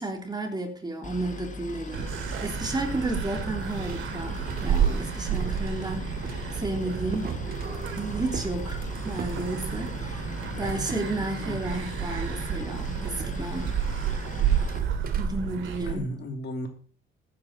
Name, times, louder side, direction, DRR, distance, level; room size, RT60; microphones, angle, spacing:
voice 1, 0.0-7.4 8.0-13.8 15.2-16.1, right 2 dB, 20° right, 3.3 m, -32 dB
Boat Water vehicle, 1.0-14.8, left 3 dB, 40° left, 2.1 m, -39 dB
sound 1, 1.9-16.0, right 8 dB, 85° right, 2.6 m, -31 dB
sound 2, 3.8-10.2 10.6-11.9 12.3-12.5 13.1-15.3, right 5 dB, 50° right, 2.5 m, -41 dB
voice 2, 10.5-11.6 15.8-16.7, left 1 dB, 60° left, 3.2 m, -36 dB
15.0 x 9.8 x 4.3 m
cardioid pair, 90°, 20 cm